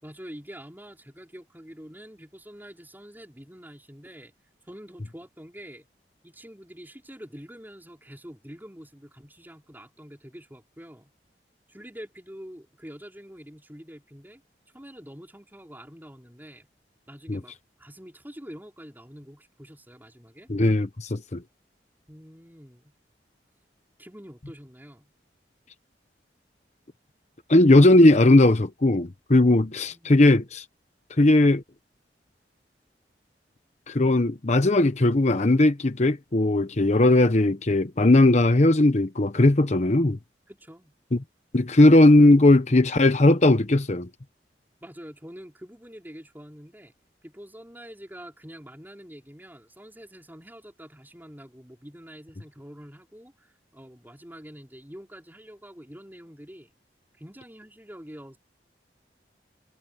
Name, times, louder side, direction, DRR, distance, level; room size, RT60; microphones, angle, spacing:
voice 1, 0.0-4.3 4.6-5.9 6.2-11.1 11.7-14.4 14.7-16.7 17.1-20.5 22.1-22.9 24.0-25.1 29.9-30.1 40.5-40.9 44.8-46.9 47.2-56.7 57.2-58.4, equal, 10° right, 5.1 m, -46 dB
voice 2, 20.5-21.4 27.5-30.6 31.2-31.6 33.9-40.2 41.5-44.1, left 2 dB, 40° left, 0.9 m, -18 dB
head